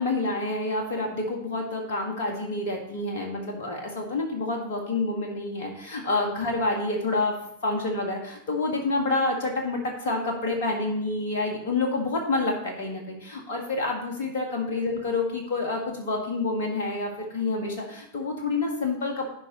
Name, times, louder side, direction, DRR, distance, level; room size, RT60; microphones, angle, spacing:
voice 1, 0.0-7.4 7.6-19.3, left 2 dB, 55° left, 2 dB, 1.6 m, -28 dB
14.5 x 5.1 x 3.0 m, 0.74 s
figure-of-eight pair, 90°, 0 cm